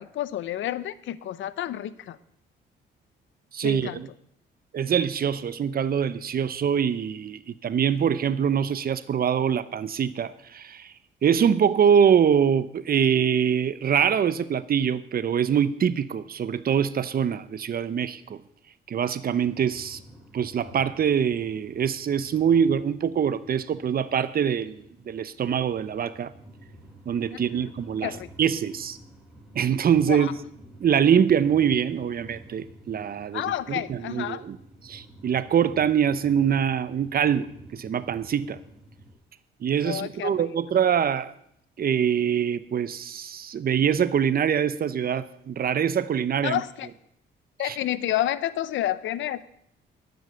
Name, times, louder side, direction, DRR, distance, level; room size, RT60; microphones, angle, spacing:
voice 1, 0.0-2.2 3.6-4.0 27.3-27.7 28.0-28.3 30.1-30.3 33.3-34.4 39.8-40.5 46.4-46.9 47.6-49.4, left 12 dB, 75° left, 0.7 m, -30 dB
voice 2, 3.5-4.1 4.7-10.9 11.2-18.4 18.9-20.0 20.3-26.3 27.1-29.0 29.5-30.3 30.8-34.6 34.8-38.6 39.6-41.3 41.8-46.6 47.6-47.8, right 8 dB, 50° right, 0.8 m, -24 dB
sound 1, 19.4-39.1, right 1 dB, 5° right, 3.6 m, -50 dB
12.0 x 8.0 x 6.7 m
cardioid pair, 90°, 20 cm